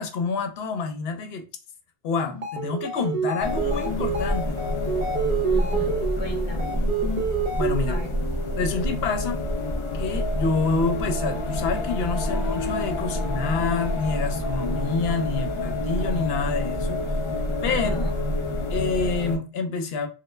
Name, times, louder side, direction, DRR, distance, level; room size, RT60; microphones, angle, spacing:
voice 1, 0.0-1.4 2.0-4.6 7.6-8.0 8.6-9.4 10.0-17.0 17.6-18.1 18.7-20.1, left 4 dB, 70° left, 0.8 m, -27 dB
sound 1, 2.3-8.1, right 5 dB, 45° right, 0.6 m, -28 dB
sound 2, 3.4-19.4, left 1 dB, 45° left, 0.4 m, -27 dB
voice 2, 5.5-6.8 7.9-8.1 17.6-18.1, left 1 dB, 25° left, 0.8 m, -37 dB
3.2 x 2.1 x 3.1 m
omnidirectional pair, 1.1 m